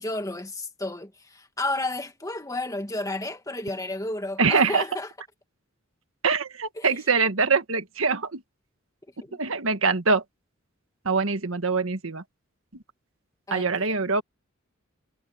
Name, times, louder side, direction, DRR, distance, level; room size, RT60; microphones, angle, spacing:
voice 1, 0.0-5.1 6.8-7.0 9.2-9.4 13.5-14.0, left 2 dB, 15° left, 2.0 m, -32 dB
voice 2, 4.4-4.8 6.2-8.4 9.3-10.2 11.0-12.2 12.7-12.8 13.5-14.2, right 4 dB, 80° right, 1.6 m, -24 dB
head